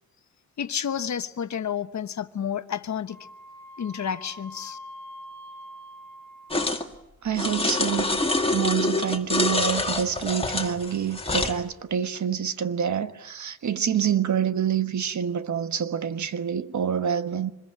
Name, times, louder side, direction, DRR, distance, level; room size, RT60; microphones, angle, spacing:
voice 1, 0.6-3.2 3.8-4.8, left 8 dB, 65° left, 1.2 m, -30 dB
Wind instrument woodwind instrument, 3.1-7.0, equal, ahead, 7.3 m, -44 dB
sound 1, 6.5-6.8 7.4-11.6, left 2 dB, 20° left, 2.1 m, -26 dB
voice 2, 7.2-17.5, right 8 dB, 65° right, 1.4 m, -27 dB
26.0 x 21.5 x 9.1 m
wide cardioid pair, 145°, 31 cm